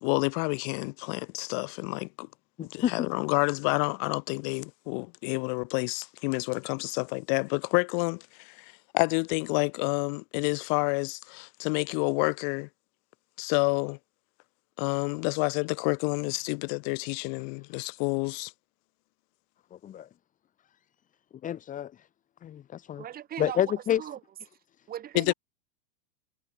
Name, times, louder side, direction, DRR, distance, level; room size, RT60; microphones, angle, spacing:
voice 1, 0.0-2.3 2.6-12.7 13.4-14.0 14.8-18.5 25.1-25.3, left 40 dB or more, 55° left, 3.1 m, -29 dB
voice 2, 2.6-3.1 19.8-20.1 21.4-21.9 22.4-23.0 23.4-24.0, left 10 dB, 25° left, 1.5 m, -29 dB
voice 3, 23.0-24.2 24.9-25.3, right 11 dB, 30° right, 3.2 m, -39 dB
hypercardioid pair, 125°, 31 cm